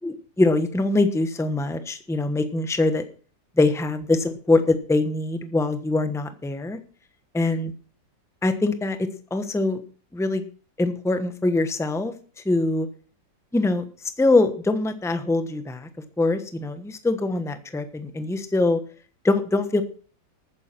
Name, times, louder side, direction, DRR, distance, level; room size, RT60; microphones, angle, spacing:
voice 1, 0.0-3.0 3.6-6.8 7.3-7.7 8.4-9.0 9.3-9.8 10.1-10.4 10.8-12.1 12.4-12.9 13.5-13.8 14.2-15.9 16.2-18.8 19.2-19.8, left 2 dB, ahead, 9 dB, 0.8 m, -23 dB
13.5 x 9.6 x 5.9 m, 0.42 s
omnidirectional pair, 2.0 m